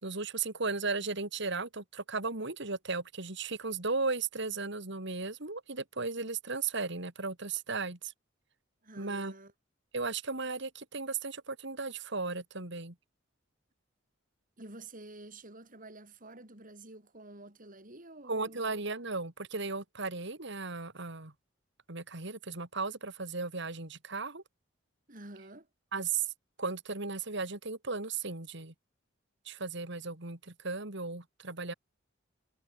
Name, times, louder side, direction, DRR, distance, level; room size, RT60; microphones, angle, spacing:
voice 1, 0.0-8.1 9.0-9.3 9.9-12.9 18.3-21.3 21.9-24.4 25.9-26.3 26.6-28.7 29.4-31.7, right 4 dB, 65° right, 3.0 m, -36 dB
voice 2, 8.8-9.5 14.6-18.7 25.1-25.7, right 2 dB, 45° right, 6.0 m, -49 dB
head